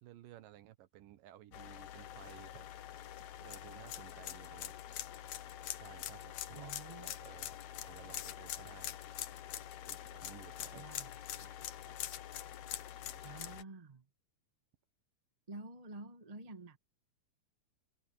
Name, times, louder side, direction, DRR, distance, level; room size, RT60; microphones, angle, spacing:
voice 1, 0.0-2.7 3.4-4.7 5.7-8.9 9.9-10.8 11.9-12.0 13.0-13.3, right 13 dB, 80° right, 2.7 m, -56 dB
sound 1, 1.5-13.6, left 12 dB, 65° left, 2.1 m, -45 dB
voice 2, 6.5-7.2 10.7-11.6 13.2-14.1 15.5-16.8, right 3 dB, 30° right, 0.7 m, -50 dB
omnidirectional pair, 3.9 m